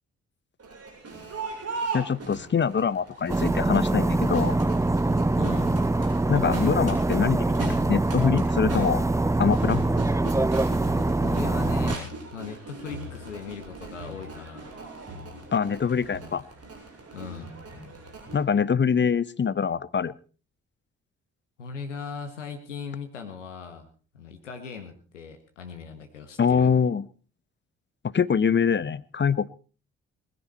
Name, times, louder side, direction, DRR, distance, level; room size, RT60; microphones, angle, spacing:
Crowd, 0.6-18.4, right 3 dB, 45° right, 7.9 m, -39 dB
voice 1, 1.9-4.6 6.3-9.0 9.4-9.8 15.5-16.4 18.3-20.1 26.4-27.1 28.0-29.5, left 6 dB, 30° left, 18 dB, 0.9 m, -24 dB
sound 1, 3.3-12.0, right 2 dB, 10° right, 0.7 m, -24 dB
voice 2, 5.4-5.7 11.2-14.8 17.1-17.5 21.6-23.9 24.1-26.7, left 6 dB, 90° left, 6 dB, 1.6 m, -38 dB
20.5 x 15.5 x 4.3 m, 0.39 s
hypercardioid pair, 45°, 35 cm